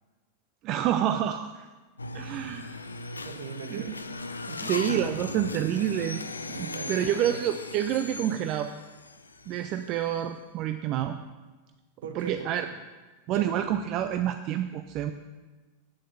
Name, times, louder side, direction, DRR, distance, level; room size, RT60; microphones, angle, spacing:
voice 1, 0.6-1.7 2.1-2.7 3.7-3.9 4.6-6.2 6.6-8.7 9.5-11.2 12.2-12.7 13.3-15.1, right 10 dB, 40° right, 9 dB, 0.5 m, -28 dB
sound 1, 2.0-10.1, left 3 dB, 75° left, 0.5 m, -38 dB
voice 2, 3.2-4.7 6.5-7.5 12.0-12.8 13.3-13.6, right 5 dB, 65° right, 7 dB, 1.2 m, -41 dB
8.8 x 7.5 x 8.5 m, 1.3 s
figure-of-eight pair, 90°, 0 cm